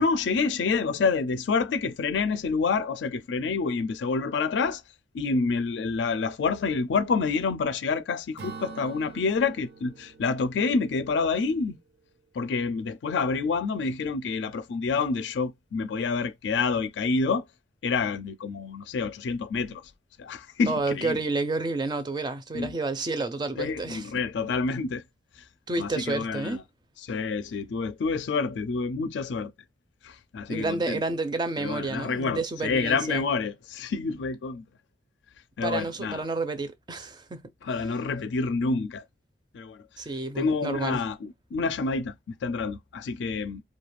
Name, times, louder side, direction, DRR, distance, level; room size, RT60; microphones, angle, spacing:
voice 1, 0.0-4.8 5.1-11.8 12.3-17.4 17.8-19.9 20.2-21.2 22.5-22.7 23.6-25.0 25.8-26.6 27.0-29.5 30.0-31.0 31.6-34.7 35.6-36.2 37.6-39.0 39.5-39.8 40.4-43.6, left 4 dB, 90° left, 0.4 m, -28 dB
Acoustic guitar / Strum, 8.4-12.0, right 5 dB, 75° right, 0.7 m, -46 dB
voice 2, 20.7-24.1 25.7-26.6 30.5-33.2 35.6-37.4 40.0-41.0, right 3 dB, 25° right, 0.4 m, -30 dB
2.4 x 2.2 x 3.1 m
head